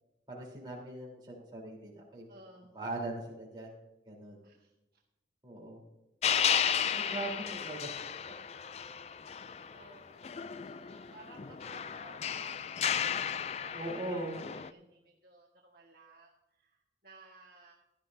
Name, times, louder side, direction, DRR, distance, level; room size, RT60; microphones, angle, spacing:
voice 1, 0.3-2.2 2.7-3.7 4.1-4.4 5.4-5.8 6.9-7.9 13.7-14.4, right 2 dB, 25° right, -3 dB, 3.7 m, -40 dB
voice 2, 2.3-2.8 4.4-4.7 7.0-8.3 9.7-17.7, right 2 dB, 60° right, -1 dB, 1.5 m, -57 dB
sound 1, 6.2-9.9 10.2-14.7, left 8 dB, 35° left, 0.3 m, -34 dB
16.0 x 12.0 x 2.7 m, 0.94 s
head